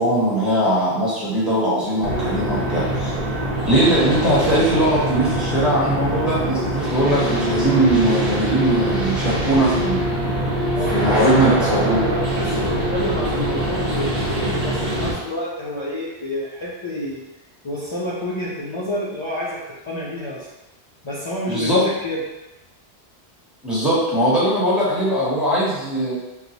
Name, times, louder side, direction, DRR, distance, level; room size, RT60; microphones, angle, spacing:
voice 1, 0.0-3.1 3.7-10.0 10.9-12.1 21.5-21.8 23.6-26.2, right 1 dB, ahead, -8 dB, 0.9 m, -20 dB
sound 1, 2.0-15.1, right 1 dB, 60° right, 1.2 m, -23 dB
voice 2, 10.7-17.2 17.6-20.5 21.0-22.2, left 1 dB, 55° left, -7 dB, 0.3 m, -29 dB
4.0 x 2.1 x 2.8 m, 1.0 s
omnidirectional pair, 1.1 m